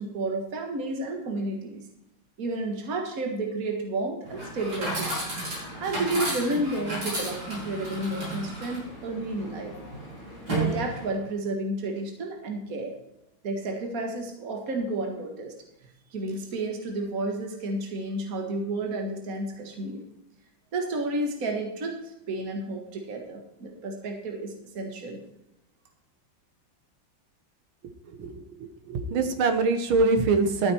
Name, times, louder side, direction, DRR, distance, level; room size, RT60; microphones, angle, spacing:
voice 1, 0.0-1.8 2.4-5.1 5.8-9.7 10.5-12.9 13.4-15.5 16.1-20.1 20.7-22.0 22.3-25.2, right 2 dB, 45° right, 3 dB, 2.1 m, -31 dB
Chatter / Coin (dropping), 4.2-11.3, right 1 dB, 65° right, 6.0 m, -33 dB
voice 2, 28.2-30.7, right 3 dB, 90° right, 8 dB, 2.1 m, -24 dB
13.5 x 8.6 x 4.5 m, 0.85 s
omnidirectional pair, 2.2 m